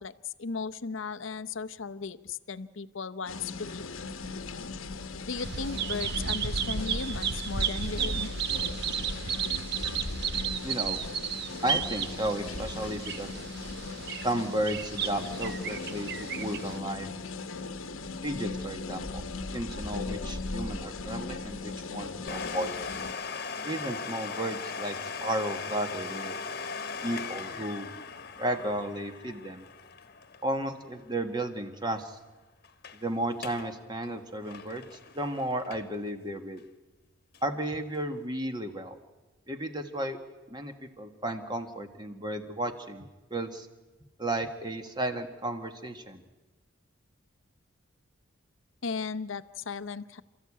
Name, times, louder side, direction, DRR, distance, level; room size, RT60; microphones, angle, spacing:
voice 1, 0.0-3.9 5.3-8.3 48.8-50.2, left 4 dB, 70° left, 12 dB, 0.7 m, -36 dB
sound 1, 3.3-23.1, left 3 dB, 90° left, 1.2 m, -38 dB
Bird vocalization bird call bird song, 5.4-16.8, right 7 dB, 50° right, 0.8 m, -33 dB
voice 2, 10.6-11.0 11.6-13.3 14.2-17.1 18.2-19.2 19.5-22.7 23.6-25.0 25.2-26.4 27.0-27.9 28.4-29.6 30.4-32.2 32.9-34.8 35.1-36.6 37.4-39.0 39.5-40.2 40.5-43.7 44.2-46.2, right 1 dB, 20° right, 7 dB, 1.5 m, -33 dB
Domestic sounds home sounds, 22.3-31.7 32.0-32.1 32.6-33.0 33.3-33.7 34.0-36.1 36.6-36.7 37.3-37.4, left 5 dB, 50° left, 1.3 m, -39 dB
29.0 x 14.0 x 8.6 m, 1.2 s
head